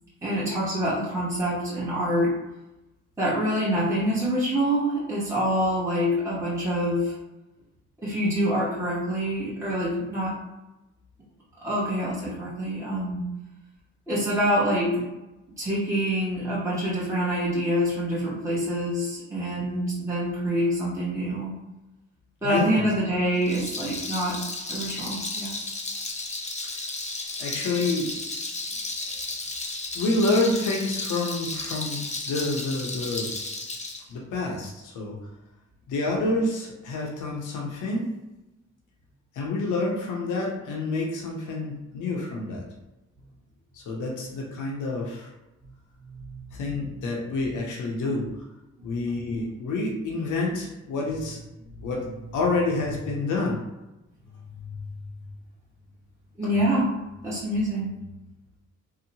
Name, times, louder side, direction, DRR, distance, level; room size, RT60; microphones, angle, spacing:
voice 1, 0.2-2.4 3.2-7.1 8.0-10.4 11.6-13.3 14.1-15.0 15.6-21.5 22.4-24.4 24.7-25.6 46.3-46.4 56.4-56.9 57.2-57.9, equal, 10° right, -9 dB, 0.9 m, -26 dB
voice 2, 22.4-22.8 26.6-26.9 27.4-28.1 29.9-33.3 34.1-35.2 35.9-38.1 39.3-42.6 43.7-45.3 46.5-48.3 48.8-51.4 51.8-52.1 52.3-53.6 56.4-56.5, left 2 dB, 80° left, -1 dB, 0.6 m, -28 dB
Rattle, 23.4-34.0, left 2 dB, 25° left, 0.6 m, -33 dB
2.8 x 2.0 x 2.7 m, 0.99 s
cardioid pair, 55°, 30 cm